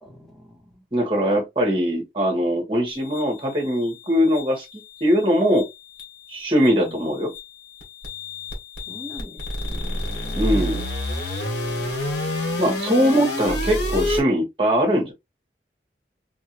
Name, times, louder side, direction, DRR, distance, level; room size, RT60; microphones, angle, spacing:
voice 1, 0.0-0.8 6.7-7.1 8.9-10.5, left 1 dB, ahead, 1.3 m, -43 dB
voice 2, 0.9-4.6 5.0-5.7 6.3-7.3 10.3-10.8 12.6-15.1, equal, 30° right, 1.3 m, -21 dB
sound 1, 2.9-14.2, left 1 dB, 85° left, 1.6 m, -30 dB
3.0 x 2.7 x 2.9 m
head